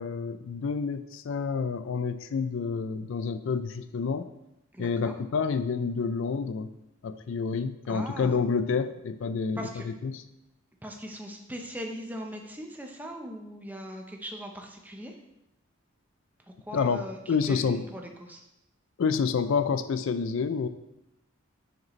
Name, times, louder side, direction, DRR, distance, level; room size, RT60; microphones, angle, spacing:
voice 1, 0.0-4.3 4.8-6.7 7.0-10.2 16.7-17.0 17.3-17.9 19.0-20.7, left 5 dB, 70° left, 11 dB, 0.4 m, -28 dB
voice 2, 4.7-5.1 7.9-8.4 9.6-9.8 10.8-15.2 16.7-17.2 17.5-18.4, equal, 10° right, 2 dB, 0.7 m, -39 dB
9.3 x 5.1 x 3.1 m, 0.89 s
head